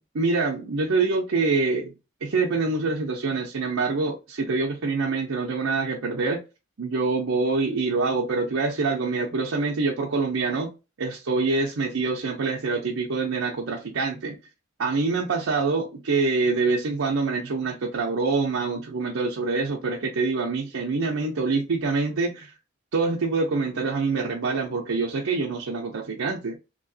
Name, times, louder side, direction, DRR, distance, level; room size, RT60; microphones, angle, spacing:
voice 1, 0.1-1.9 2.2-6.4 6.8-10.7 11.0-14.4 14.8-22.5 22.9-26.6, right 4 dB, 80° right, 0.6 m, -25 dB
3.0 x 2.7 x 2.7 m
head